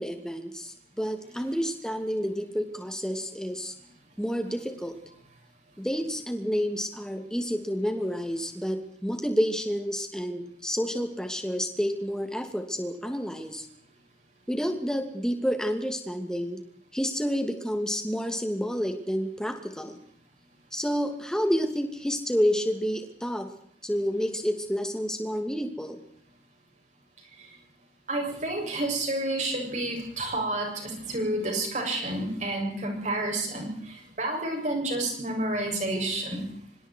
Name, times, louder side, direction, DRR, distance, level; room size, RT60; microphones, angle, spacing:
voice 1, 0.0-3.7 4.2-4.9 5.8-13.7 14.5-16.6 16.9-20.0 20.7-23.5 23.8-26.0, equal, 5° left, 5 dB, 2.7 m, -29 dB
voice 2, 28.1-33.7 34.2-36.4, right 1 dB, 40° right, 1 dB, 7.5 m, -29 dB
25.5 x 25.5 x 4.7 m, 0.62 s
head